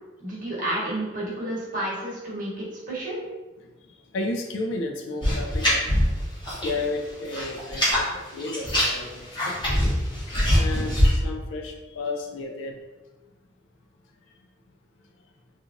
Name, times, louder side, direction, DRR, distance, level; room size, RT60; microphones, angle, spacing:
voice 1, 0.2-3.2, right 1 dB, 45° right, -6 dB, 0.9 m, -31 dB
voice 2, 3.8-5.8 6.6-9.8 10.4-12.8, left 2 dB, 85° left, 3 dB, 0.3 m, -33 dB
sound 1, 5.2-6.8 7.1-8.0 8.4-11.1, equal, 25° left, 0.7 m, -23 dB
2.9 x 2.4 x 2.4 m, 1.2 s
head